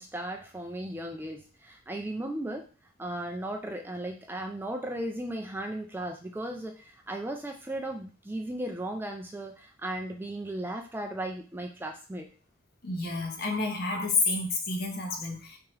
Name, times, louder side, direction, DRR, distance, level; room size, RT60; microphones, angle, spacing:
voice 1, 0.0-2.7 3.0-12.3, right 1 dB, 10° right, 2 dB, 0.3 m, -36 dB
voice 2, 12.8-15.6, left 3 dB, 50° left, 3 dB, 0.7 m, -29 dB
3.4 x 2.9 x 3.1 m, 0.35 s
head